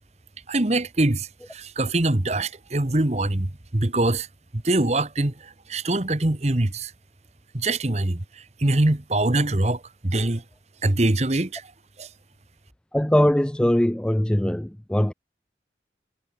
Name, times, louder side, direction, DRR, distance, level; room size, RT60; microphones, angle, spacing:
voice 1, 0.5-4.3 4.5-6.9 7.5-10.4 10.8-11.7 12.0-12.1, right 2 dB, 40° right, 1.3 m, -23 dB
voice 2, 12.9-15.1, left 1 dB, 5° left, 0.3 m, -21 dB
head